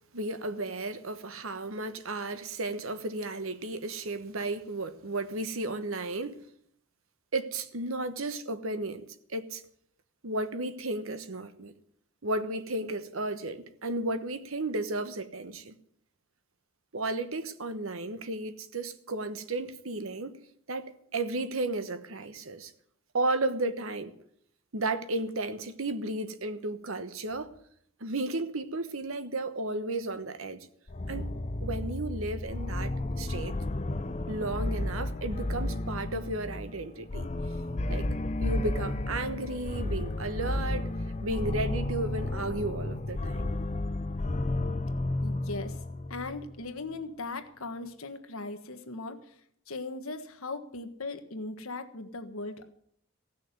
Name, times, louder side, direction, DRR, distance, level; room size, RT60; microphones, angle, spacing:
voice 1, 0.1-6.4 7.3-9.6 10.2-11.7 12.2-15.7 16.9-20.4 20.7-22.7 23.1-24.1 24.7-27.5 28.0-30.7 31.1-31.3 31.6-32.9 33.2-33.5 34.3-37.3 37.9-38.1 38.4-40.9 41.2-43.5, right 2 dB, 75° right, 1.1 m, -33 dB
sound 1, 30.9-46.6, left 2 dB, 30° left, 0.6 m, -32 dB
voice 2, 45.2-45.8 46.1-49.3 49.7-52.7, left 3 dB, 75° left, 1.5 m, -38 dB
16.5 x 6.5 x 9.6 m
head